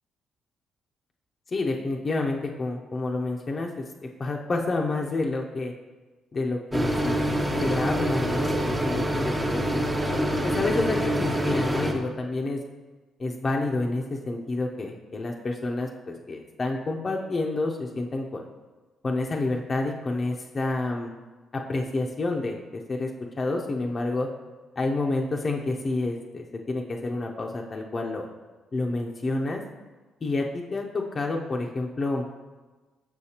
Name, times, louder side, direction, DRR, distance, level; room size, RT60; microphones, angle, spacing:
voice 1, 1.5-3.8 4.2-5.7 6.3-7.2 7.6-12.6 13.2-18.5 19.0-21.1 21.7-23.1 23.4-24.3 24.8-28.3 28.7-29.6 30.2-32.2, left 2 dB, 35° left, 0 dB, 0.6 m, -29 dB
sound 1, 6.7-11.9, equal, 20° right, 0.8 m, -26 dB
6.4 x 6.2 x 2.9 m, 1.3 s
cardioid pair, 90°, 0 cm